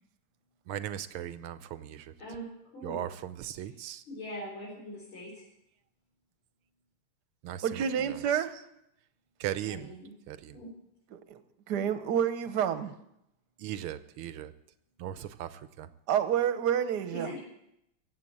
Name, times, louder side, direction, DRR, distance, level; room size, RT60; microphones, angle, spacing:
voice 1, 0.7-2.1 2.8-4.0 7.4-8.4 9.4-10.0 10.3-10.6 13.6-14.5 15.0-15.9, right 11 dB, 80° right, 13 dB, 1.5 m, -38 dB
voice 2, 4.1-5.3 9.7-10.1 10.5-10.7 17.1-17.4, equal, 65° left, -6 dB, 5.5 m, -41 dB
voice 3, 7.6-8.6 11.1-11.4 11.7-12.9 16.1-17.3, right 9 dB, 55° right, 10 dB, 1.4 m, -29 dB
15.5 x 7.8 x 8.6 m, 0.80 s
omnidirectional pair, 2.4 m